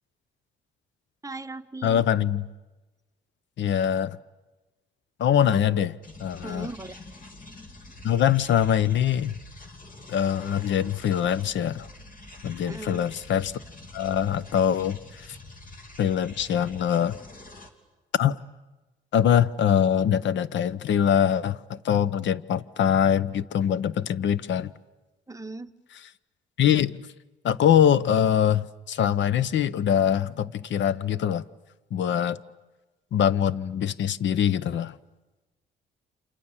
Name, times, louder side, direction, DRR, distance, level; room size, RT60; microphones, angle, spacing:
voice 1, 1.2-2.0 6.4-6.9 12.7-13.1 25.3-25.7, right 3 dB, 15° right, 1.0 m, -38 dB
voice 2, 1.8-2.5 3.6-4.2 5.2-5.9 6.2-6.7 8.0-9.3 10.1-11.9 12.4-13.5 13.9-15.4 16.0-17.2 18.1-18.4 19.1-24.7 26.6-27.0 27.4-31.4 31.9-32.4 33.1-35.0, left 9 dB, 65° left, 0.8 m, -23 dB
sound 1, 6.0-17.7, left 2 dB, 45° left, 3.1 m, -46 dB
29.5 x 27.0 x 7.3 m
cardioid pair, 90°, 20 cm